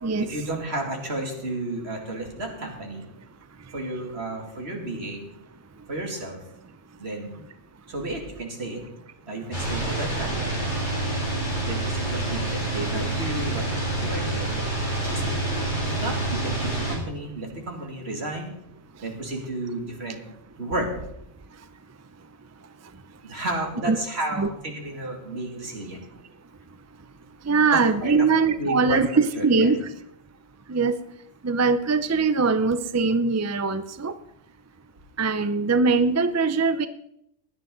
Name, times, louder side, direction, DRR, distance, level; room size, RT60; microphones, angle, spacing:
voice 1, 0.2-3.1 3.7-5.3 5.9-6.4 7.0-7.3 7.9-8.8 9.3-10.6 11.6-14.7 15.1-15.4 15.8-18.5 19.0-20.2 20.6-20.9 23.2-26.0 27.7-28.1 28.6-29.0 29.4-29.7, right 2 dB, 60° right, 1 dB, 2.8 m, -32 dB
sound 1, 9.5-17.0, right 2 dB, 40° left, 3.8 m, -27 dB
voice 2, 27.4-29.9 30.7-31.0 31.4-34.2 35.2-36.9, right 4 dB, 25° right, 12 dB, 0.3 m, -22 dB
16.5 x 11.5 x 3.9 m, 0.78 s
omnidirectional pair, 1.2 m